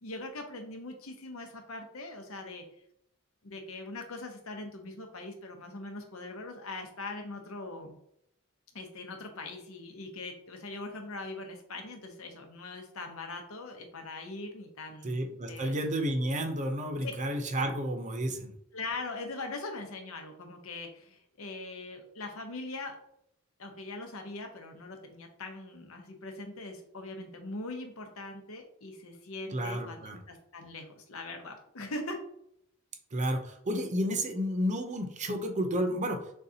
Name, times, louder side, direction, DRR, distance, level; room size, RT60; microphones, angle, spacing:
voice 1, 0.0-2.6 3.4-8.0 8.7-15.7 17.0-17.1 17.6-17.7 18.7-23.0 23.6-32.2, left 2 dB, 90° left, 4 dB, 0.9 m, -41 dB
voice 2, 15.0-18.5 29.5-30.2 33.1-36.2, equal, 35° right, 5 dB, 0.7 m, -31 dB
6.7 x 2.4 x 2.8 m, 0.74 s
head